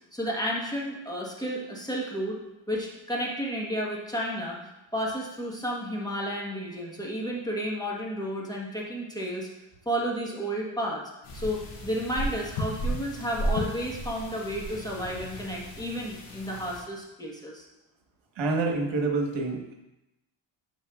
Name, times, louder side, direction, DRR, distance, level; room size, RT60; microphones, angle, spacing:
voice 1, 0.1-2.4 2.7-4.6 4.9-9.5 9.8-11.0 11.3-17.6, equal, 10° left, -3 dB, 1.3 m, -32 dB
sound 1, 11.2-16.8, equal, 85° left, 2.4 m, -34 dB
voice 2, 18.4-19.7, right 3 dB, 65° right, 1 dB, 1.4 m, -27 dB
10.5 x 4.5 x 2.4 m, 0.94 s
cardioid pair, 90°, 49 cm